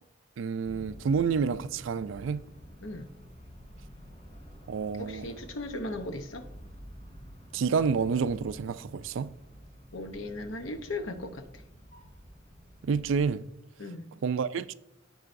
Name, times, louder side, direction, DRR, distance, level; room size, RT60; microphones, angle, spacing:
voice 1, 0.4-2.5 4.7-5.3 7.5-9.3 12.8-13.5 14.2-14.7, right 5 dB, 70° right, 0.4 m, -29 dB
sound 1, 0.6-13.3, equal, 30° left, 3.1 m, -49 dB
voice 2, 5.0-6.5 9.9-11.6 13.8-14.1, left 2 dB, 75° left, 0.8 m, -37 dB
14.0 x 4.8 x 2.6 m
head